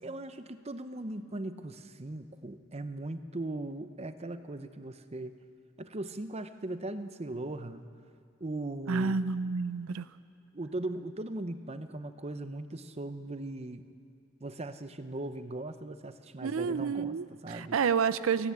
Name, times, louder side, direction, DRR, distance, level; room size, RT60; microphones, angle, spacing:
voice 1, 0.0-5.4 5.8-7.9 8.4-9.3 10.5-13.8 14.4-17.8, right 2 dB, 30° right, 10 dB, 0.7 m, -39 dB
voice 2, 8.9-10.1 16.4-18.5, right 5 dB, 85° right, 15 dB, 0.5 m, -29 dB
28.5 x 10.5 x 8.6 m, 2.4 s
head